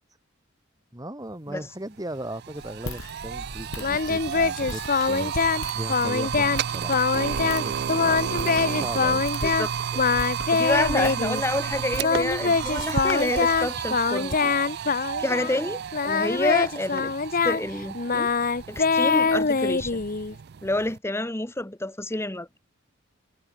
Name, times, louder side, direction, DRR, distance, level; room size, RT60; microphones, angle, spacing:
voice 1, 0.9-7.0 7.4-8.2 8.7-9.3, right 1 dB, 15° right, 3.3 m, -37 dB
sound 1, 1.6-1.7 2.0-21.0, right 8 dB, 50° right, 0.4 m, -32 dB
Walk footsteps, 2.5-13.7, left 2 dB, 80° left, 5.0 m, -41 dB
Singing, 3.8-5.6 5.9-6.6 6.9-9.7 10.0-11.4 12.0-15.6 15.9-20.3, left 5 dB, 40° left, 1.0 m, -24 dB
voice 2, 9.4-10.0 10.5-14.6 15.2-17.1 17.4-18.3 18.7-20.0 20.6-22.5, left 1 dB, 10° left, 1.2 m, -29 dB
head